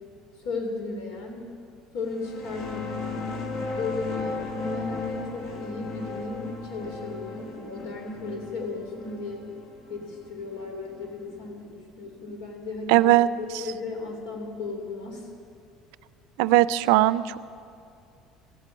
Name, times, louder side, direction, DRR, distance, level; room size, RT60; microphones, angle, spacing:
voice 1, 0.4-1.5 1.9-9.4 9.9-15.3, left 3 dB, 85° left, 2 dB, 3.1 m, -35 dB
sound 1, 2.1-11.4, left 3 dB, 60° left, 1.9 m, -35 dB
voice 2, 12.9-13.3 16.4-17.4, right 16 dB, 90° right, 17 dB, 0.4 m, -19 dB
15.0 x 8.4 x 9.2 m, 2.5 s
cardioid pair, 150°, 0 cm